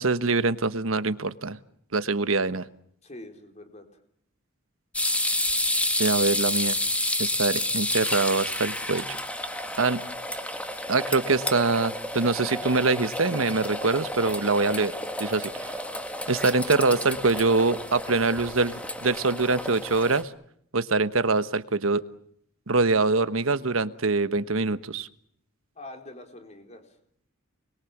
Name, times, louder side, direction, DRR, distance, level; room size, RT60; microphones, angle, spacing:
voice 1, 0.0-1.6 1.9-2.7 6.0-6.8 7.2-9.2 9.5-10.0 10.9-14.9 15.2-15.8 16.3-20.3 20.7-22.0 22.7-25.1, right 3 dB, 80° right, 12 dB, 1.3 m, -24 dB
voice 2, 3.0-3.9 25.7-27.0, left 1 dB, 35° left, 5 dB, 4.3 m, -44 dB
sound 1, 4.9-20.2, left 1 dB, 5° left, 1.8 m, -30 dB
29.0 x 22.0 x 7.4 m, 0.69 s
head